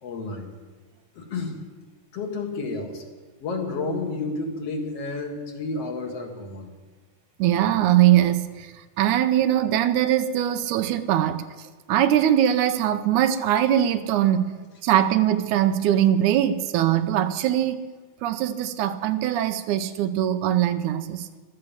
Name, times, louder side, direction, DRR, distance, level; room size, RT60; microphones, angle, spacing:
voice 1, 0.0-0.5 1.2-1.6 2.1-3.0 3.4-6.7, left 3 dB, 55° left, 2.6 m, -31 dB
voice 2, 7.4-8.5 9.0-11.4 11.9-14.5 14.8-17.9 18.2-21.3, right 11 dB, 80° right, 2.2 m, -21 dB
14.5 x 12.5 x 7.2 m
omnidirectional pair, 3.5 m